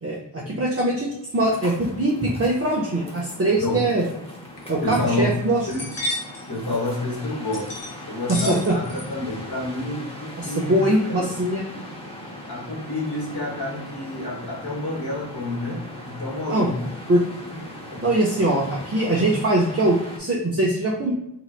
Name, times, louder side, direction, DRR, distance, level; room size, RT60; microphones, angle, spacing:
voice 1, 0.0-4.0 4.7-5.6 8.3-8.7 10.4-11.7 16.5-16.7 17.1-17.2 18.0-21.1, right 1 dB, 35° right, -4 dB, 0.6 m, -22 dB
sound 1, 1.3-20.2, left 1 dB, 15° left, 0.7 m, -39 dB
sound 2, 4.5-4.6 5.0-5.1 5.5-6.4 7.5-7.9 8.3-9.1 9.3-9.7, left 1 dB, 90° left, 0.8 m, -31 dB
voice 2, 4.8-5.4 5.7-5.9 6.5-8.8 9.1-11.4 12.5-16.9 17.5-18.1, left 2 dB, 60° left, -3 dB, 1.1 m, -29 dB
3.2 x 2.9 x 2.3 m, 0.87 s
wide cardioid pair, 75°, 41 cm